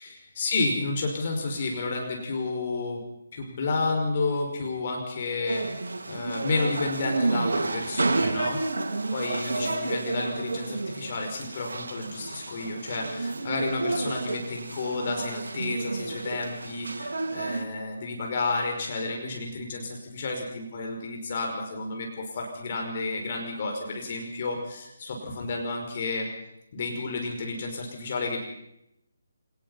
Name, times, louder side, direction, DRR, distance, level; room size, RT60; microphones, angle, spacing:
voice 1, 0.0-3.0 3.3-5.7 6.1-8.6 9.1-26.3 26.7-28.4, left 3 dB, 45° left, 2 dB, 5.6 m, -31 dB
sound 1, 5.5-17.6, right 3 dB, 70° right, 3.5 m, -30 dB
27.0 x 19.0 x 5.7 m, 0.83 s
figure-of-eight pair, 150°, 0 cm